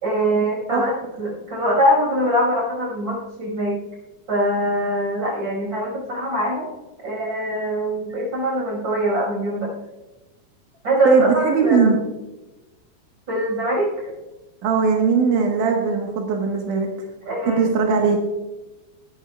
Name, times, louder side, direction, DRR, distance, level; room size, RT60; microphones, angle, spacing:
voice 1, 0.0-3.8 4.3-6.7 7.0-9.7 10.8-11.9 13.3-14.1 17.3-17.7, equal, 35° right, -2 dB, 6.0 m, -23 dB
voice 2, 11.1-12.0 14.6-16.9 17.4-18.2, right 5 dB, 85° right, 1 dB, 2.9 m, -19 dB
18.0 x 13.0 x 2.3 m, 1.1 s
omnidirectional pair, 3.5 m